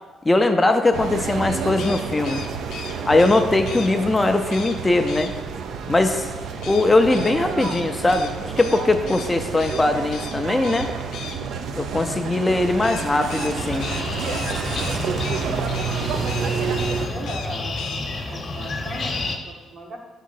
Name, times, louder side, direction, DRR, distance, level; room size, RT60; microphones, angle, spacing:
voice 1, 0.3-2.4 3.0-5.3 5.9-6.3 6.7-10.9 11.7-13.9, left 2 dB, 20° left, 6 dB, 0.4 m, -20 dB
sound 1, 0.9-17.1, right 6 dB, 75° right, 0.4 m, -29 dB
quero-quero, 1.7-3.9 4.5-4.8 5.1-5.3 6.6-9.3 9.6-9.8 10.1-10.4 10.6-11.4 12.8-15.5 15.7-16.0 16.2-16.5 16.8-17.5 17.8-18.0, left 6 dB, 80° left, 0.5 m, -37 dB
sound 2, 13.6-19.4, left 3 dB, 40° left, 0.9 m, -30 dB
voice 2, 16.3-17.9 18.3-20.0, right 2 dB, 55° right, 2 dB, 1.0 m, -38 dB
5.0 x 3.7 x 5.5 m, 1.3 s
cardioid pair, 90°, 0 cm